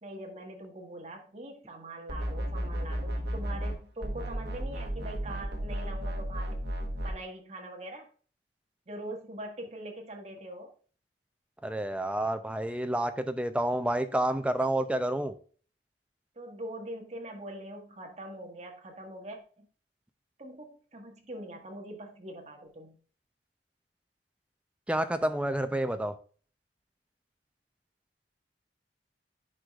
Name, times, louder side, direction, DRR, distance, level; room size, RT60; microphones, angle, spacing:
voice 1, 0.0-6.6 7.0-8.1 8.9-10.7 16.3-19.7 20.4-23.0, right 1 dB, 40° right, 2 dB, 1.5 m, -43 dB
sound 1, 2.1-7.1, equal, 70° right, 1.2 m, -33 dB
voice 2, 11.6-15.4 24.9-26.1, right 1 dB, 5° right, 9 dB, 0.5 m, -29 dB
9.8 x 4.9 x 2.4 m, 0.42 s
head